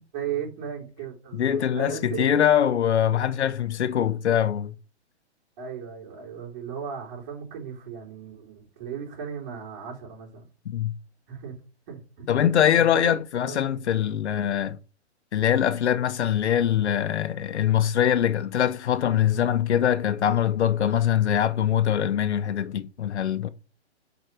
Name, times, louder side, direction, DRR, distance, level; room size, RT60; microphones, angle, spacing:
voice 1, 0.1-2.3 5.6-10.5 11.3-11.5 11.9-12.4 12.8-13.9, right 7 dB, 40° right, 3.8 m, -36 dB
voice 2, 1.4-4.7 10.7-10.9 12.3-14.8 15.3-23.5, left 9 dB, 75° left, 1.0 m, -23 dB
6.5 x 5.0 x 6.1 m
hypercardioid pair, 135°, 34 cm